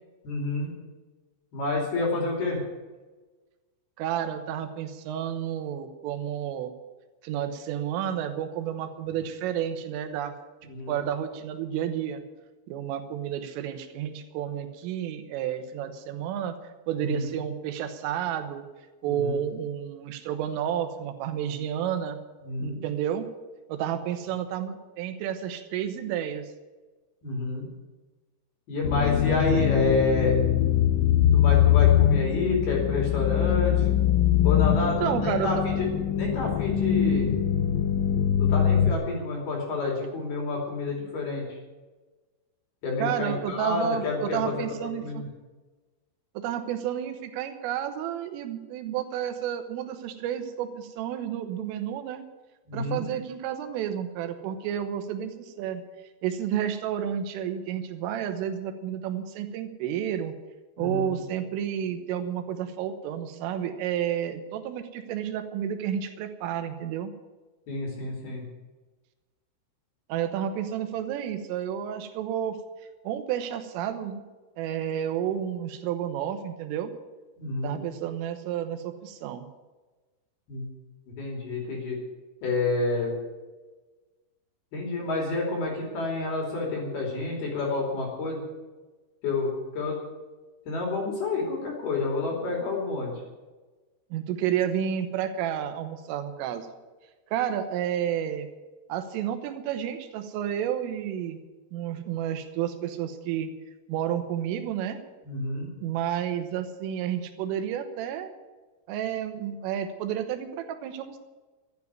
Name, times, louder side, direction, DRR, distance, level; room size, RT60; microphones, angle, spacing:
voice 1, 0.2-0.7 1.5-2.6 10.7-11.0 17.0-17.3 19.0-19.4 22.4-22.8 27.2-27.6 28.7-30.4 31.3-34.0 34.4-35.9 36.1-37.3 38.4-41.6 42.8-44.6 45.0-45.3 52.7-53.0 60.8-61.2 67.7-68.5 77.4-77.8 80.5-80.7 81.2-82.0 82.4-83.1 84.7-88.4 89.2-90.0 90.7-93.1 105.2-105.7, left 3 dB, 55° left, -1 dB, 4.5 m, -29 dB
voice 2, 2.2-2.6 4.0-6.7 7.2-10.3 10.6-12.2 12.7-16.6 16.9-18.7 19.0-22.2 22.6-23.3 23.7-26.5 29.3-29.8 34.8-35.5 43.0-45.2 46.4-52.2 52.7-55.8 56.2-60.4 60.8-67.1 70.1-72.6 73.1-74.2 74.6-76.9 77.6-79.5 94.1-96.7 97.3-98.5 98.9-101.4 101.7-103.5 103.9-105.0 105.8-108.3 108.9-111.2, right 9 dB, 80° right, 8 dB, 3.7 m, -31 dB
sound 1, 28.8-38.9, left 10 dB, 85° left, 3.4 m, -22 dB
12.5 x 9.7 x 9.4 m, 1.3 s
omnidirectional pair, 5.9 m